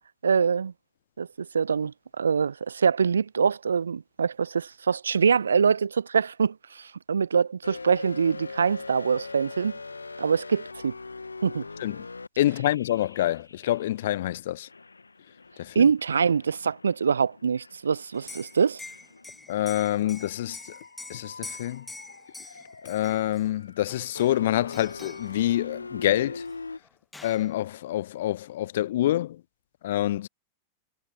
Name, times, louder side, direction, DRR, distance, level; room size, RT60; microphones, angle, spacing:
voice 1, 0.2-0.7 1.2-9.8 10.2-10.9 11.4-11.6 15.7-18.8, right 6 dB, 70° right, 0.6 m, -24 dB
Crash Scene During Le Mans, 7.6-14.2 14.6-26.8, left 3 dB, 80° left, 1.8 m, -43 dB
voice 2, 12.4-14.7 15.6-15.8 19.5-20.6 21.1-21.9 22.8-26.4 27.2-29.4 29.8-30.3, left 13 dB, 55° left, 0.5 m, -26 dB
Liquid, 18.1-23.4 23.9-24.4 24.7-25.3 26.5-26.6 26.8-27.5, left 2 dB, 10° left, 1.9 m, -45 dB
figure-of-eight pair, 90°, 0 cm